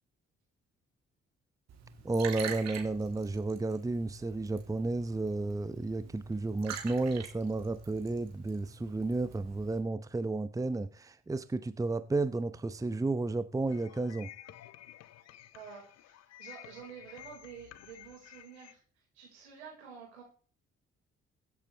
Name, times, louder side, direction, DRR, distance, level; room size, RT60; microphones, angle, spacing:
Liquid, 1.7-9.8, right 7 dB, 50° right, 3.0 m, -46 dB
voice 1, 2.0-14.3, right 3 dB, 10° right, 0.8 m, -32 dB
sound 1, 13.7-18.7, left 13 dB, 50° left, 0.8 m, -52 dB
voice 2, 15.5-18.8 19.1-20.2, right 7 dB, 75° right, 4.7 m, -49 dB
23.0 x 8.3 x 3.2 m
figure-of-eight pair, 40°, 33 cm